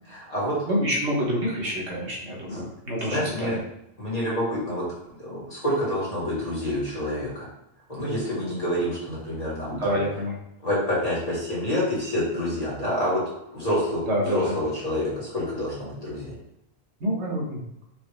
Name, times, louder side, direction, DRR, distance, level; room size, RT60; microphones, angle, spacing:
voice 1, 0.1-0.6 2.5-2.6 3.0-3.6 4.0-4.8 5.2-7.5 7.9-10.0 10.6-13.2 13.5-16.3, left 1 dB, 35° left, -7 dB, 2.0 m, -27 dB
voice 2, 0.6-3.6 9.8-10.3 14.1-14.5 17.0-17.8, equal, 85° right, -3 dB, 1.5 m, -27 dB
4.7 x 3.1 x 3.3 m, 0.80 s
omnidirectional pair, 1.1 m